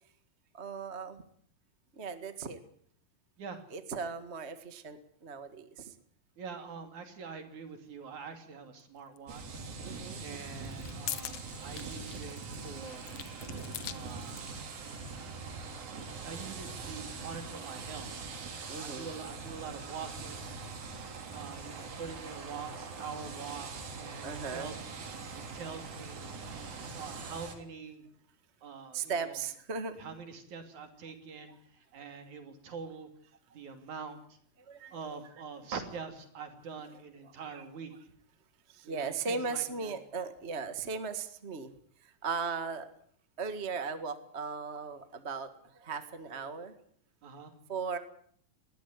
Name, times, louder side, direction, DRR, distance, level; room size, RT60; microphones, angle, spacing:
voice 1, 0.5-1.2 1.9-2.6 3.7-5.9 9.8-10.4 15.9-16.2 18.7-19.1 20.7-20.8 24.2-24.7 25.2-25.3 28.9-30.0 34.7-35.0 37.4-37.6 38.7-41.7 42.0-42.9 43.4-46.7 47.7-48.0, right 5 dB, 35° right, 9 dB, 1.1 m, -37 dB
voice 2, 6.4-9.6 10.2-13.1 13.9-14.5 16.2-18.2 18.8-20.6 21.3-24.9 25.3-26.2 26.9-28.1 28.6-29.4 30.0-33.1 33.5-34.4 34.9-37.9 38.8-39.9 47.2-47.5, right 5 dB, 60° right, 7 dB, 3.9 m, -44 dB
sound 1, 9.2-9.3 10.6-14.5, left 11 dB, 65° left, 1.5 m, -43 dB
sound 2, 9.3-27.6, right 4 dB, 85° right, 5.1 m, -43 dB
20.5 x 16.0 x 9.6 m, 0.62 s
omnidirectional pair, 4.0 m